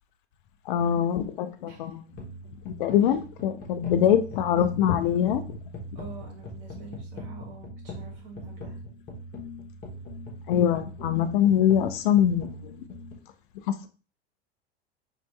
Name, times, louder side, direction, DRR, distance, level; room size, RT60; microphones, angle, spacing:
voice 1, 0.7-2.0 2.7-5.4 10.5-12.9 13.7-13.9, left 9 dB, 50° left, 9 dB, 0.5 m, -23 dB
sound 1, 2.1-13.1, equal, 30° left, 1.2 m, -41 dB
voice 2, 6.0-8.8, right 3 dB, 55° right, -1 dB, 1.9 m, -45 dB
4.1 x 3.1 x 3.2 m, 0.36 s
figure-of-eight pair, 80°, 33 cm